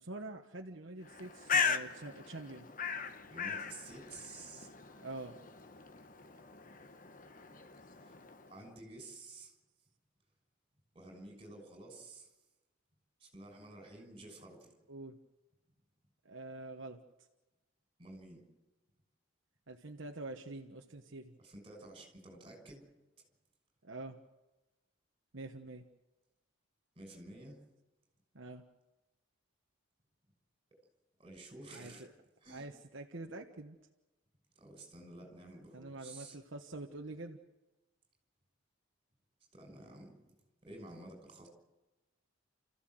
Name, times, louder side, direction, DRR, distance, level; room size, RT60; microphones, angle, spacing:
voice 1, 0.0-2.7 5.0-5.4 14.9-15.2 16.2-17.0 19.7-21.4 23.8-24.2 25.3-25.8 28.3-28.6 31.7-32.1 32.5-33.8 35.7-37.4, right 2 dB, 65° right, 3 dB, 1.3 m, -46 dB
Bird, 1.0-8.6, left 6 dB, 40° left, 1.1 m, -39 dB
voice 2, 3.3-4.7 8.0-8.2 8.5-9.5 10.9-12.3 13.2-14.7 18.0-18.4 21.4-22.8 26.9-27.6 31.2-32.0 32.4-32.7 34.5-36.4 39.5-40.2 40.6-41.5, right 2 dB, 25° right, 2 dB, 6.2 m, -51 dB
30.0 x 15.0 x 7.8 m, 1.1 s
head